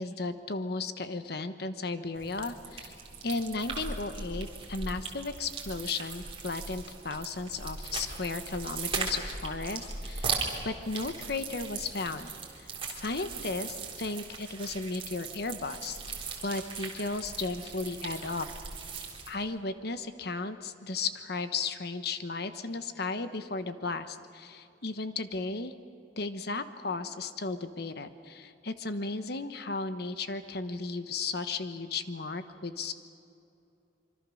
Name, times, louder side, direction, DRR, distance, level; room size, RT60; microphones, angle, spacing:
voice 1, 0.0-2.9 3.2-10.4 10.6-12.3 12.6-16.0 16.4-18.5 19.3-25.7 26.2-32.9, left 3 dB, 60° left, 10 dB, 1.1 m, -35 dB
sound 1, 2.1-19.3, right 4 dB, 30° right, 3.5 m, -39 dB
25.5 x 24.5 x 6.4 m, 2.8 s
head